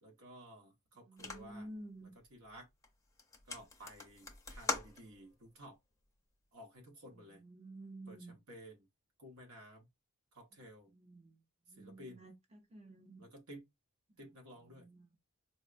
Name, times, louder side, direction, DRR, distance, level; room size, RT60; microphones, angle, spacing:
voice 1, 0.0-1.7 2.3-2.7 3.5-5.8 6.5-7.4 8.1-8.8 9.2-9.9 10.3-10.9 11.8-12.2 13.2-13.6 14.2-14.8, equal, 90° right, 1.2 m, -54 dB
voice 2, 0.9-2.1 7.0-8.4 10.5-11.4 11.7-13.2 14.1-14.3 14.6-15.2, right 1 dB, 30° right, 0.6 m, -52 dB
sound 1, 1.2-1.7 2.3-2.5 2.8-2.9 3.2-5.4, left 3 dB, 15° left, 0.5 m, -42 dB
4.3 x 2.2 x 2.5 m
head